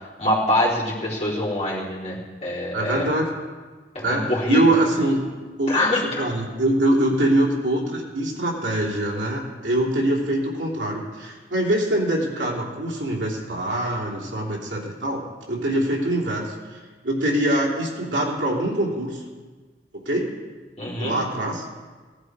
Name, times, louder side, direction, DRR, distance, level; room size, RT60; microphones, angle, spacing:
voice 1, 0.2-3.1 3.9-4.6 5.7-6.0 20.8-21.2, left 1 dB, 35° left, -7 dB, 4.1 m, -24 dB
voice 2, 2.7-3.2 4.0-5.3 5.6-15.2 15.5-16.8 17.0-19.2 19.9-20.3 21.0-21.7, right 1 dB, 85° right, -2 dB, 3.0 m, -23 dB
17.0 x 11.0 x 4.8 m, 1.4 s
head